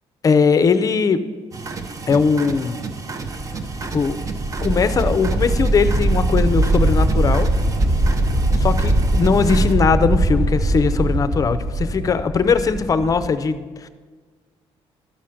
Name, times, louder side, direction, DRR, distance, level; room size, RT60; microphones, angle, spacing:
voice 1, 0.2-1.2 2.1-2.8 3.9-4.2 4.6-7.5 8.5-13.9, left 5 dB, 35° left, 11 dB, 0.6 m, -19 dB
sound 1, 1.5-9.7, right 4 dB, 30° right, 0.7 m, -32 dB
sound 2, 3.3-13.3, right 1 dB, 70° right, 2.1 m, -21 dB
12.5 x 4.9 x 5.8 m, 1.5 s
cardioid pair, 125°, 11 cm